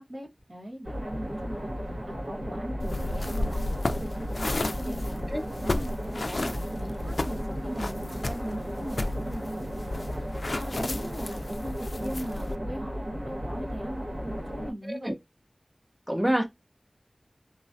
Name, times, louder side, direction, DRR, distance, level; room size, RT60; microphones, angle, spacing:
voice 1, 0.0-5.2 5.6-15.1, equal, 75° right, 1.4 m, -40 dB
sound 1, 0.8-14.7, equal, 90° right, 1.7 m, -34 dB
sound 2, 2.8-12.6, left 2 dB, 80° left, 0.3 m, -34 dB
voice 2, 16.1-16.4, equal, 10° right, 0.5 m, -26 dB
3.0 x 2.2 x 2.7 m
wide cardioid pair, 45°, 0 cm